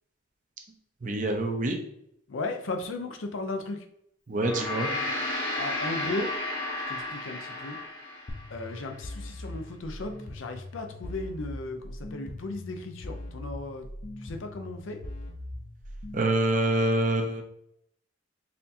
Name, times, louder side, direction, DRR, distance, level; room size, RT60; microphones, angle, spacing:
voice 1, 1.0-1.8 4.3-4.9 16.1-17.4, right 1 dB, 40° right, 4 dB, 0.6 m, -26 dB
voice 2, 2.3-3.8 5.6-6.4 6.9-7.8 8.5-13.9 14.2-15.0, left 2 dB, 90° left, 6 dB, 0.5 m, -36 dB
Gong, 4.3-8.9, left 2 dB, 60° left, 1.1 m, -33 dB
sound 1, 8.3-16.3, left 1 dB, 40° left, 0.5 m, -41 dB
4.1 x 2.7 x 2.7 m, 0.74 s
head